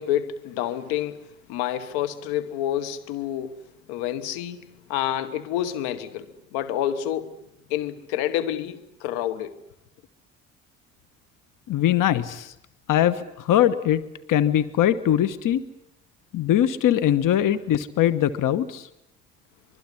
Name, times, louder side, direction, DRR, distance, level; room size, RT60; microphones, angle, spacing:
voice 1, 0.0-3.6 3.9-7.4 7.7-9.6, left 11 dB, 70° left, 1.4 m, -28 dB
voice 2, 11.7-12.5 12.9-15.6 16.3-18.9, left 11 dB, 50° left, 1.3 m, -21 dB
25.0 x 22.0 x 9.9 m
hypercardioid pair, 50°, 40 cm